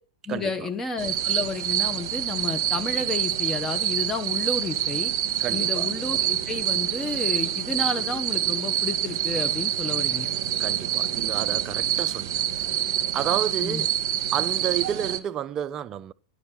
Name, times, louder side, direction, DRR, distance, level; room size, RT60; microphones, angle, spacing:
voice 1, 0.3-5.1 5.5-10.3 13.6-13.9, left 3 dB, 15° left, 0.8 m, -31 dB
sound 1, 1.0-15.2, right 11 dB, 50° right, 1.0 m, -26 dB
voice 2, 5.4-5.9 10.6-12.6 13.1-14.0 14.3-16.1, right 10 dB, 30° right, 0.4 m, -31 dB
11.0 x 5.3 x 6.1 m
figure-of-eight pair, 95°, 2 cm